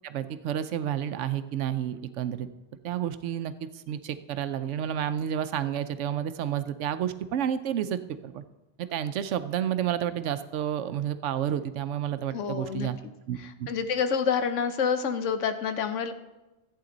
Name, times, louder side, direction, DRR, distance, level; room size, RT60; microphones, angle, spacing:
voice 1, 0.0-2.5 2.8-8.0 8.2-8.4 8.8-13.0 13.3-13.7, right 10 dB, 80° right, 12 dB, 0.9 m, -30 dB
voice 2, 12.3-13.1 13.4-16.1, left 6 dB, 90° left, 9 dB, 1.1 m, -28 dB
14.5 x 8.6 x 3.9 m, 1.1 s
omnidirectional pair, 1.2 m